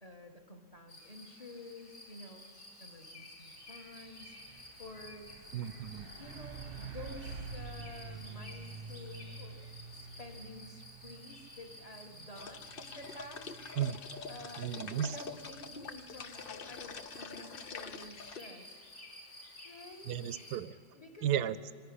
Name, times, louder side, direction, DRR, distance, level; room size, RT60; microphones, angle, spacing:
voice 1, 0.0-2.5 2.8-5.3 6.2-9.7 9.9-13.5 14.3-18.8 19.6-20.2 20.9-21.9, left 1 dB, 20° left, 3 dB, 1.7 m, -51 dB
sound 1, 0.9-20.6, left 1 dB, 35° left, 4.6 m, -53 dB
Truck, 3.0-3.2 3.6-16.1, right 4 dB, 35° right, 1.1 m, -49 dB
voice 2, 5.5-6.1 13.8-14.0 14.6-15.1 20.1-20.7 21.2-21.6, right 10 dB, 70° right, 15 dB, 1.1 m, -34 dB
sound 2, 12.4-18.4, left 5 dB, 55° left, 0.6 m, -46 dB
24.5 x 10.5 x 10.0 m, 2.2 s
omnidirectional pair, 1.9 m